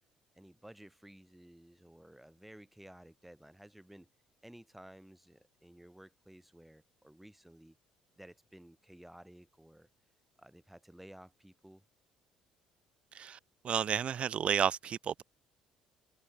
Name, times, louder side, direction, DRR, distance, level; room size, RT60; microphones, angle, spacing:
voice 1, 0.3-4.1 4.4-7.8 8.2-9.9 10.4-11.8, right 1 dB, 5° right, 7.4 m, -55 dB
voice 2, 13.6-15.2, right 8 dB, 40° right, 0.5 m, -31 dB
figure-of-eight pair, 50°, 3 cm